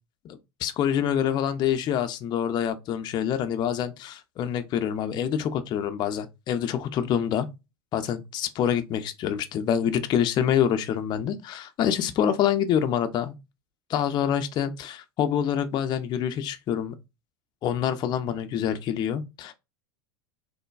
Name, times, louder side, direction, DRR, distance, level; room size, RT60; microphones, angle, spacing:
voice 1, 0.2-7.5 7.9-13.3 13.9-16.9 17.6-19.5, left 9 dB, 30° left, 0.4 m, -26 dB
3.2 x 2.2 x 2.2 m
hypercardioid pair, 90°, 14 cm